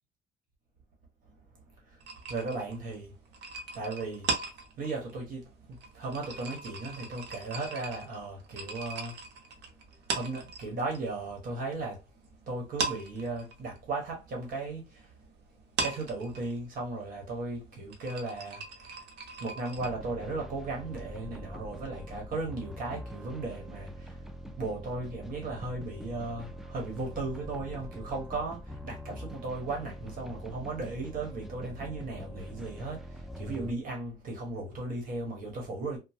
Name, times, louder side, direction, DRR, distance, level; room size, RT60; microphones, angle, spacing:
sound 1, 2.0-11.0 11.3-12.3 12.6-19.9, right 4 dB, 90° right, 0.7 m, -38 dB
voice 1, 2.3-3.4 3.7-4.3 4.7-9.2 10.1-15.2 15.7-19.0 19.4-24.2 24.6-36.0, right 3 dB, 55° right, 1.2 m, -36 dB
sound 2, 19.8-33.7, equal, ahead, 0.3 m, -44 dB
2.9 x 2.1 x 2.8 m
cardioid pair, 110°, 17 cm